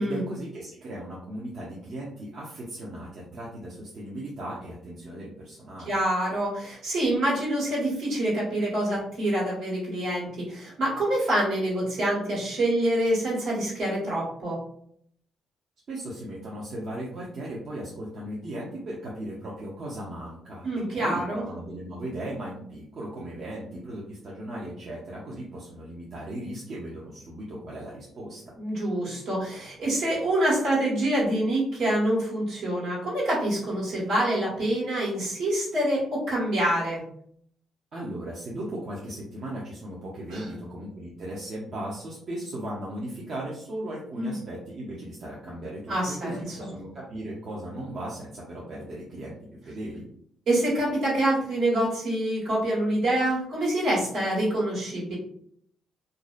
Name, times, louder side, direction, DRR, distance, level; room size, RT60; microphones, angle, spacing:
voice 1, 0.0-6.0 15.9-28.4 37.9-49.4 49.7-50.0, right 1 dB, 55° right, -5 dB, 0.6 m, -37 dB
voice 2, 5.9-14.6 20.6-21.4 28.6-37.0 40.3-40.4 44.1-44.3 45.9-46.7 50.5-55.2, right 1 dB, 75° right, -7 dB, 1.4 m, -26 dB
2.5 x 2.0 x 2.4 m, 0.66 s
cardioid pair, 90°, 0 cm